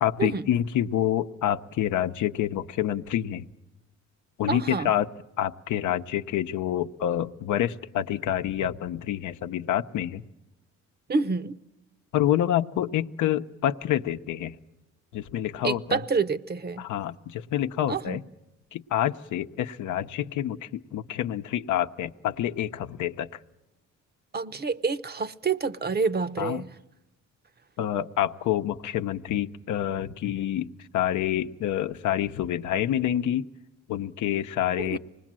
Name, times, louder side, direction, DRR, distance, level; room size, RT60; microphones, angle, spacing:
voice 1, 0.0-3.5 4.4-5.1 5.4-10.2 12.1-14.6 15.1-16.0 16.8-18.2 18.7-23.3 26.4-26.6 27.8-33.5 33.9-35.0, left 11 dB, 80° left, 0.8 m, -27 dB
voice 2, 4.5-4.9 11.1-11.6 15.6-16.9 17.9-18.2 24.3-26.7 34.8-35.0, right 4 dB, 35° right, 0.8 m, -28 dB
25.5 x 20.0 x 7.5 m
cardioid pair, 90°, 30 cm